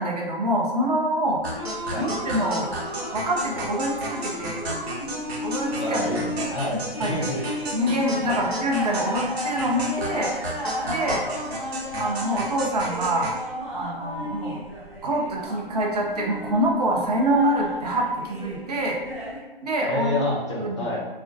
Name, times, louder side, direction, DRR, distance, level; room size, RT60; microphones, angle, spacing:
voice 1, 0.0-1.4 2.0-2.7 3.1-4.6 5.4-6.3 7.0-7.1 7.7-10.3 10.8-11.2 12.0-13.4 13.7-14.6 15.0-19.0 19.6-20.2 20.6-20.9, right 1 dB, 40° right, -1 dB, 0.5 m, -25 dB
sound 1, 1.4-19.4, equal, ahead, 1.3 m, -34 dB
sound 2, 1.4-13.4, right 1 dB, 80° right, 0.8 m, -33 dB
voice 2, 5.8-7.3 8.3-8.4 19.9-21.0, left 1 dB, 30° left, -4 dB, 0.5 m, -28 dB
2.4 x 2.1 x 2.5 m, 1.2 s
hypercardioid pair, 150°, 31 cm